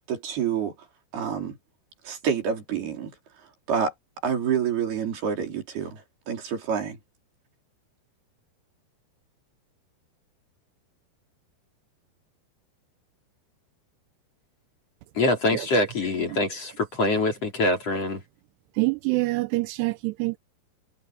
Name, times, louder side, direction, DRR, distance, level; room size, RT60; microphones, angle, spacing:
voice 1, 0.1-0.7 1.1-1.6 2.1-3.1 3.7-3.9 4.2-6.0 6.3-7.0, right 7 dB, 65° right, 5.8 m, -27 dB
voice 2, 15.1-18.2, left 2 dB, 35° left, 4.6 m, -24 dB
voice 3, 18.8-20.4, right 23 dB, 85° right, 2.7 m, -25 dB
omnidirectional pair, 4.8 m